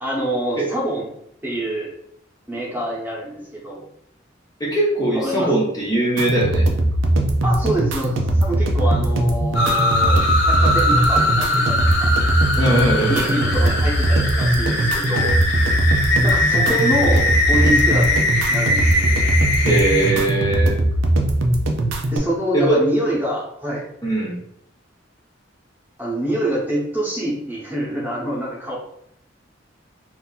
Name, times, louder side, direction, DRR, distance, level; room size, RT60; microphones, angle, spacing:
voice 1, 0.0-1.1 1.4-1.9 2.5-3.8 5.1-5.5 7.4-10.2 10.5-12.1 13.0-15.3 16.2-18.2 18.5-19.1 22.1-23.9 26.0-28.8, right 1 dB, 10° right, -4 dB, 0.9 m, -26 dB
voice 2, 4.6-6.7 12.6-13.4 19.6-20.7 22.5-22.9 24.0-24.4, right 2 dB, 20° left, -5 dB, 0.7 m, -20 dB
sound 1, 6.2-22.2, right 1 dB, 80° right, 0.5 m, -20 dB
sound 2, 9.5-20.1, left 1 dB, 60° left, 0.7 m, -21 dB
2.7 x 2.6 x 3.9 m, 0.73 s
head